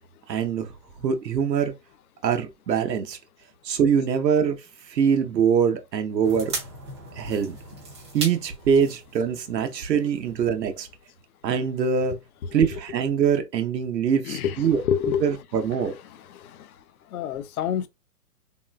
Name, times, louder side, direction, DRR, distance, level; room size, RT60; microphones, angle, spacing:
voice 1, 0.3-0.7 1.0-1.7 2.2-3.2 3.6-4.6 4.9-6.5 7.2-7.6 8.1-10.9 11.4-12.2 12.5-14.8 15.2-15.9, right 7 dB, 90° right, 0.8 m, -23 dB
sound 1, 6.2-10.7 11.1-11.2, right 3 dB, 15° right, 0.6 m, -38 dB
voice 2, 14.2-15.3 15.9-16.0 17.1-17.9, left 8 dB, 60° left, 0.5 m, -27 dB
3.6 x 2.1 x 2.3 m
hypercardioid pair, 155°, 49 cm